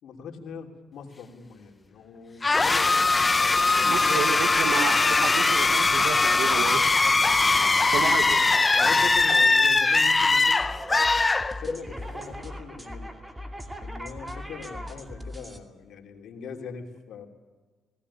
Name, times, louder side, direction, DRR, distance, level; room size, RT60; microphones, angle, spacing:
voice 1, 0.0-3.1 3.4-4.3 6.6-6.7 7.0-10.7 11.5-13.1 13.8-17.3, left 6 dB, 70° left, 3 dB, 3.1 m, -41 dB
sound 1, 2.4-12.0, left 3 dB, 25° left, 0.8 m, -21 dB
voice 2, 3.8-6.8 7.9-8.4, right 8 dB, 85° right, 7 dB, 1.7 m, -31 dB
sound 2, 10.6-15.6, equal, 10° right, 2.5 m, -39 dB
19.5 x 17.5 x 10.0 m, 1.4 s
cardioid pair, 90°, 0 cm